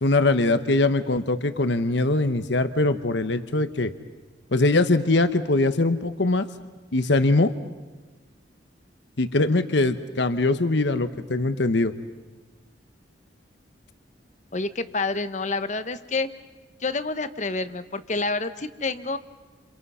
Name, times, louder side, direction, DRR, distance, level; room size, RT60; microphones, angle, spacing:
voice 1, 0.0-3.9 4.5-6.5 6.9-7.5 9.2-11.9, left 2 dB, 65° left, 11 dB, 1.0 m, -22 dB
voice 2, 14.5-16.3 16.8-19.2, left 3 dB, 40° left, 11 dB, 1.0 m, -28 dB
29.5 x 28.0 x 5.6 m, 1.3 s
head